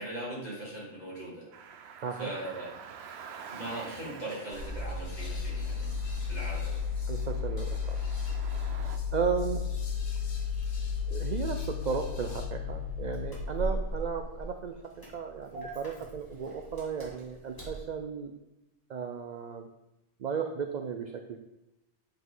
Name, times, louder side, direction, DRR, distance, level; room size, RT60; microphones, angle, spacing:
voice 1, 0.0-1.5 2.2-2.7 3.5-5.9 6.3-6.7, right 1 dB, 35° left, -7 dB, 3.2 m, -39 dB
Car, 1.5-9.0, right 7 dB, 65° right, 0.9 m, -48 dB
voice 2, 2.0-2.3 7.1-8.0 9.1-9.6 11.1-14.8 15.1-18.3 18.9-19.7 20.2-21.4, right 6 dB, 50° right, 5 dB, 0.5 m, -34 dB
sound 1, 3.8-12.5, left 3 dB, 85° left, 1.6 m, -53 dB
Engine starting, 4.5-17.8, left 5 dB, 20° left, 2.1 m, -34 dB
8.2 x 5.3 x 3.8 m, 0.96 s
omnidirectional pair, 1.2 m